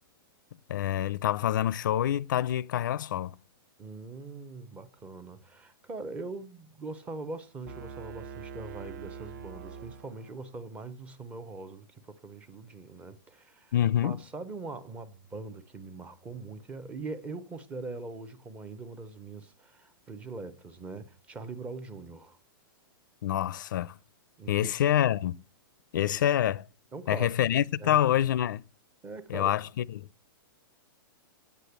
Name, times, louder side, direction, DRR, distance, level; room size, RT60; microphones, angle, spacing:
voice 1, 0.7-3.4 13.7-14.2 23.2-24.0 24.5-25.4 25.9-26.7 27.1-28.6 29.3-30.1, left 11 dB, 60° left, 0.5 m, -26 dB
voice 2, 3.8-22.4 24.4-24.7 26.9-27.3 27.8-28.3 29.0-29.6, right 3 dB, 10° right, 0.7 m, -42 dB
sound 1, 7.6-10.6, right 6 dB, 50° right, 1.3 m, -44 dB
9.3 x 8.3 x 8.0 m
hypercardioid pair, 170°, 12 cm